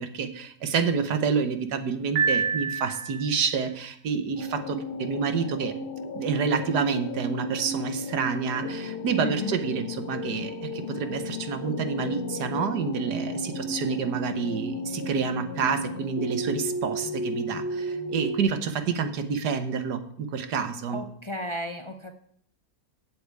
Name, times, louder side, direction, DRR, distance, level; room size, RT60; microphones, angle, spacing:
voice 1, 0.0-5.7 6.1-21.0, right 6 dB, 90° right, 8 dB, 1.7 m, -28 dB
Piano, 2.2-3.4, right 6 dB, 65° right, 2.6 m, -27 dB
sound 1, 4.4-18.4, left 1 dB, 80° left, 1.8 m, -34 dB
voice 2, 9.2-9.6 20.9-22.1, equal, 40° left, 6 dB, 0.4 m, -34 dB
8.1 x 7.9 x 8.2 m, 0.68 s
omnidirectional pair, 1.7 m